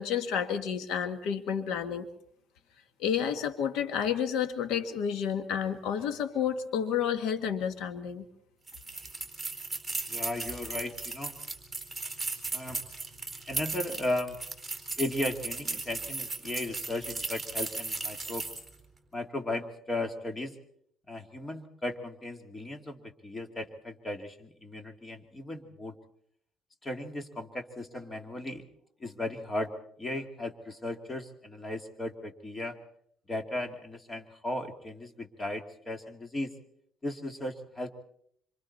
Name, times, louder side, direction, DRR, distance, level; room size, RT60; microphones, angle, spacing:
voice 1, 0.0-2.1 3.0-8.3, left 8 dB, 90° left, 8 dB, 1.9 m, -30 dB
sound 1, 8.7-18.8, right 3 dB, 10° right, 4.3 m, -36 dB
voice 2, 10.1-11.3 12.5-12.8 13.5-14.4 15.0-18.5 19.1-20.6 21.1-25.9 26.8-28.6 29.0-29.7 30.0-32.8 33.3-36.5 37.0-38.0, left 1 dB, 20° left, 5 dB, 2.4 m, -36 dB
27.0 x 26.5 x 4.2 m, 0.66 s
cardioid pair, 125°, 0 cm